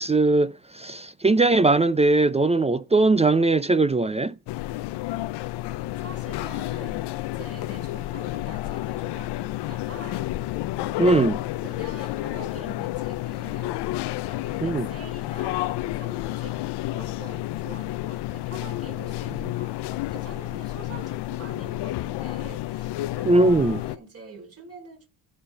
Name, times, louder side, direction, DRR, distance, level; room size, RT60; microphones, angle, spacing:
voice 1, 0.0-4.3 11.0-11.4 14.6-14.9 23.3-23.8, right 2 dB, 15° right, 0.5 m, -20 dB
sound 1, 4.5-24.0, left 16 dB, 80° left, 0.7 m, -30 dB
voice 2, 5.6-10.3 10.8-13.9 14.3-16.6 16.9-25.1, right 5 dB, 35° right, 3.8 m, -45 dB
16.0 x 5.4 x 3.3 m
cardioid pair, 85°, 40 cm